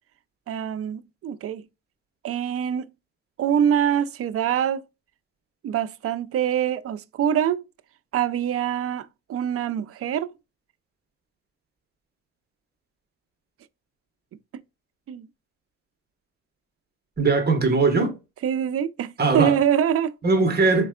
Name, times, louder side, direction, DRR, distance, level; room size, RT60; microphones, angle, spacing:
voice 1, 0.5-1.7 2.2-2.8 3.4-4.8 5.6-7.6 8.1-10.3 15.1-15.3 18.4-20.1, right 9 dB, 50° right, 0.5 m, -24 dB
voice 2, 17.2-18.1 19.2-19.6 20.2-20.9, right 3 dB, 35° right, 1.4 m, -20 dB
4.3 x 3.2 x 2.4 m
cardioid pair, 90°, 30 cm